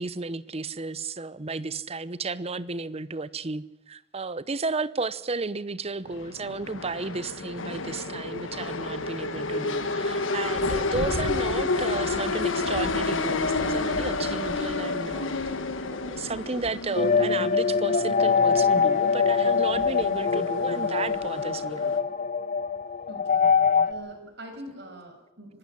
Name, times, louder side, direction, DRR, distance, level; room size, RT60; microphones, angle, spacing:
voice 1, 0.0-15.4 16.0-22.1 23.6-23.9, right 3 dB, 30° right, 0.8 m, -33 dB
sound 1, 6.1-22.0, left 3 dB, 85° left, 1.6 m, -30 dB
sound 2, 16.9-23.9, left 5 dB, 40° left, 0.8 m, -23 dB
voice 2, 23.1-23.5 23.9-25.6, right 1 dB, 60° right, 6.0 m, -43 dB
24.5 x 13.0 x 10.0 m
head